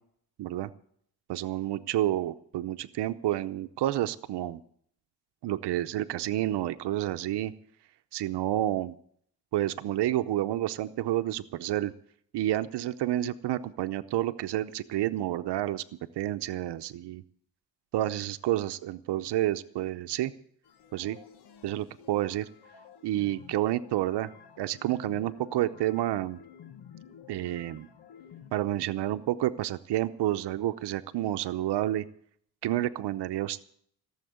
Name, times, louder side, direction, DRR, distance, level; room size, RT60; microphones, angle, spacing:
voice 1, 0.4-0.7 1.3-4.6 5.4-7.5 8.1-8.9 9.5-11.9 12.3-15.8 16.2-17.2 17.9-20.3 20.9-21.2 21.6-22.5 23.0-24.3 24.6-26.4 27.3-27.9 28.5-32.0 32.6-33.6, right 13 dB, 90° right, 10 dB, 0.8 m, -29 dB
sound 1, 20.6-28.5, left 8 dB, 75° left, 1.5 m, -52 dB
17.0 x 7.3 x 9.4 m, 0.63 s
cardioid pair, 150°, 40 cm